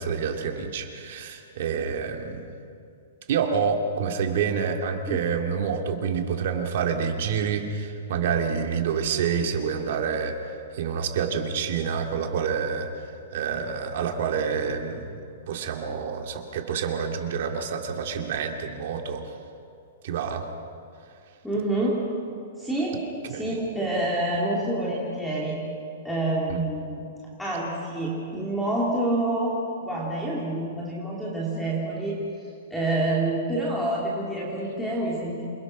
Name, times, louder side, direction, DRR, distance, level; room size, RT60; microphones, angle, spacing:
voice 1, 0.0-2.5 3.3-15.2 15.5-19.2 20.0-20.5 23.3-23.6 26.5-26.6, right 6 dB, 50° right, 4 dB, 2.2 m, -28 dB
voice 2, 21.4-22.0 22.6-23.0 23.3-25.6 26.0-27.0 27.4-29.6 29.8-32.2 32.7-35.4, right 1 dB, ahead, -5 dB, 2.3 m, -27 dB
28.0 x 20.5 x 6.2 m, 2.6 s
hypercardioid pair, 175°, 0 cm